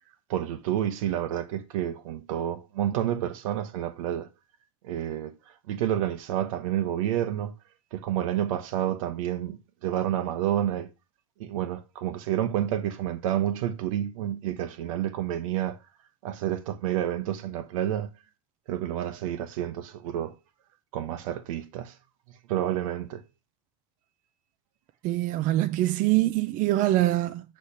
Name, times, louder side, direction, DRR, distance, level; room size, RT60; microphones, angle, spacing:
voice 1, 0.3-4.3 4.8-5.3 5.7-7.5 7.9-10.9 11.4-15.8 16.2-18.1 18.7-20.4 20.9-21.9 22.5-23.2, right 11 dB, 80° right, 1.0 m, -29 dB
voice 2, 25.0-27.4, right 15 dB, 50° right, 0.6 m, -24 dB
8.4 x 3.3 x 5.7 m
supercardioid pair, 110°, 17 cm